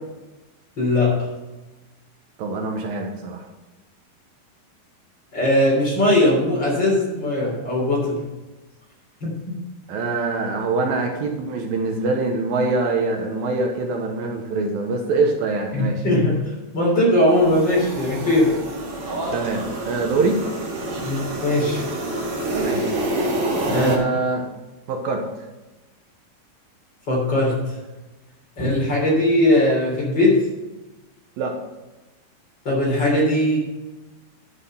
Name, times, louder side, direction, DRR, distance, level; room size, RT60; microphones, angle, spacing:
voice 1, 0.8-1.3 5.3-8.3 9.2-9.6 15.7-18.6 21.0-21.8 23.7-23.9 27.1-27.7 28.6-30.5 32.7-33.6, left 1 dB, 30° left, -4 dB, 3.7 m, -20 dB
voice 2, 2.4-3.5 9.9-16.0 19.3-20.4 22.5-22.9 23.7-24.5 24.9-25.5 31.4-31.5, right 3 dB, 70° right, 2 dB, 2.9 m, -24 dB
sound 1, 17.3-24.0, right 1 dB, 45° right, 2.3 m, -27 dB
11.5 x 6.3 x 5.6 m, 1.1 s
omnidirectional pair, 4.5 m